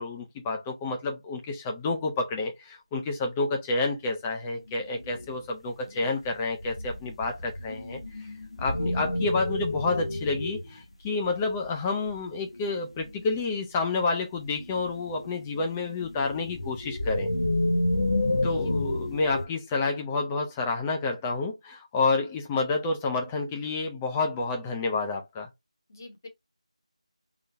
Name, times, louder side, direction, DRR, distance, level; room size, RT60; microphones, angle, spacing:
voice 1, 0.0-8.3 8.6-17.3 18.4-25.5, left 3 dB, 5° left, 0.4 m, -29 dB
sound 1, 4.7-5.3 6.6-10.8 11.3-11.4 12.1-13.4 14.6-19.5, left 1 dB, 60° left, 1.1 m, -30 dB
voice 2, 18.3-18.7 25.9-26.3, left 2 dB, 30° left, 0.9 m, -47 dB
3.9 x 2.8 x 3.2 m
figure-of-eight pair, 170°, 4 cm